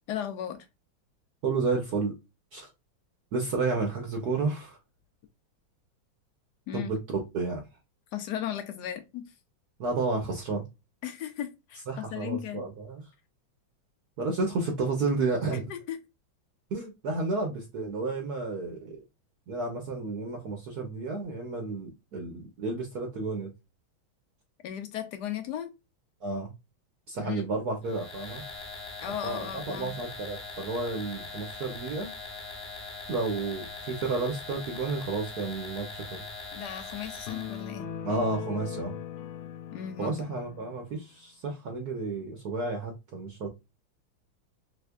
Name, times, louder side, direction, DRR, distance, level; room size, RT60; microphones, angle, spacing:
voice 1, 0.1-0.7 6.7-6.9 8.1-9.3 11.0-12.6 15.5-16.0 24.6-25.7 27.2-27.5 29.0-29.9 36.5-37.9 39.7-40.2, left 10 dB, 70° left, 1.0 m, -36 dB
voice 2, 1.4-2.2 2.5-2.7 3.3-4.8 6.7-7.6 9.8-10.6 11.9-13.0 14.2-15.7 16.7-19.0 19.5-23.5 26.2-26.5 27.1-28.4 29.2-32.1 33.1-36.3 38.0-38.9 40.0-43.5, right 3 dB, 60° right, 1.2 m, -31 dB
sound 1, 27.8-37.7, left 3 dB, 45° left, 0.8 m, -41 dB
sound 2, 37.3-40.8, left 10 dB, 90° left, 1.5 m, -39 dB
3.4 x 3.3 x 2.3 m
omnidirectional pair, 2.2 m